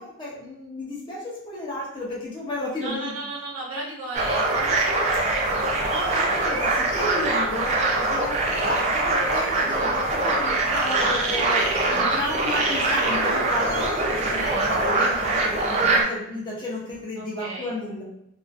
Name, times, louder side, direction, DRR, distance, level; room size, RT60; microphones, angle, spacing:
voice 1, 0.0-3.2 5.3-5.4 5.9-18.0, left 1 dB, 20° left, -5 dB, 0.5 m, -33 dB
voice 2, 2.8-5.4 5.8-6.4 11.5-12.1 14.1-14.7 17.2-17.7, right 2 dB, 80° right, -5 dB, 0.7 m, -36 dB
sound 1, 4.1-16.0, right 2 dB, 30° right, 0.3 m, -23 dB
2.4 x 2.3 x 2.3 m, 0.75 s
head